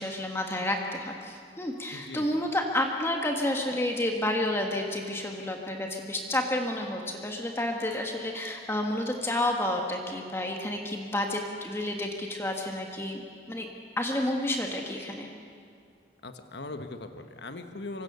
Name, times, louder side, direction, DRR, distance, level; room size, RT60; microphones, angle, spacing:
voice 1, 0.0-13.2 13.5-13.7 14.0-15.3, left 1 dB, 15° left, 2 dB, 1.7 m, -30 dB
voice 2, 1.9-2.4 16.2-18.0, left 2 dB, 60° left, 7 dB, 1.3 m, -40 dB
26.0 x 24.5 x 6.9 m, 2.2 s
head